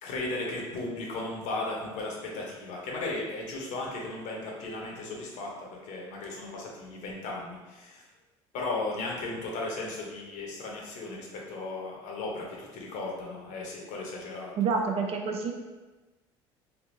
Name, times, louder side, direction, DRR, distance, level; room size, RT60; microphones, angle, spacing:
voice 1, 0.0-8.0 8.5-14.5, left 2 dB, 60° left, -1 dB, 0.9 m, -36 dB
voice 2, 14.6-15.5, right 5 dB, 45° right, 3 dB, 0.5 m, -28 dB
3.4 x 2.7 x 2.6 m, 1.2 s
hypercardioid pair, 70°, 14 cm